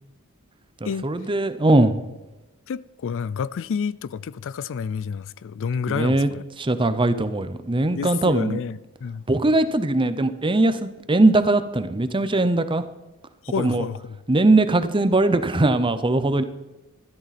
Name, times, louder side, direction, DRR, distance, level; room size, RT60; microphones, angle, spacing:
voice 1, 0.8-2.0 5.9-6.3 6.6-8.6 9.3-12.8 13.6-13.8 14.3-16.4, right 2 dB, 20° right, 0.7 m, -20 dB
voice 2, 2.7-6.4 7.9-9.2 13.4-14.2, left 6 dB, 60° left, 0.4 m, -29 dB
13.0 x 13.0 x 4.2 m
head